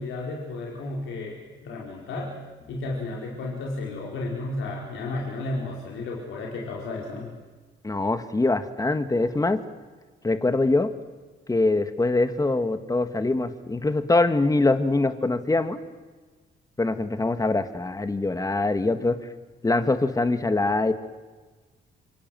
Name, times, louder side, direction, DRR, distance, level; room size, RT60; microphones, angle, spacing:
voice 1, 0.0-2.3 2.6-7.3, left 2 dB, 80° left, -2 dB, 4.6 m, -33 dB
voice 2, 7.8-9.6 10.2-10.9 11.5-15.8 16.8-19.2 19.6-20.9, left 2 dB, 15° left, 9 dB, 1.8 m, -23 dB
28.0 x 25.0 x 7.7 m, 1.3 s
cardioid pair, 90°, 20 cm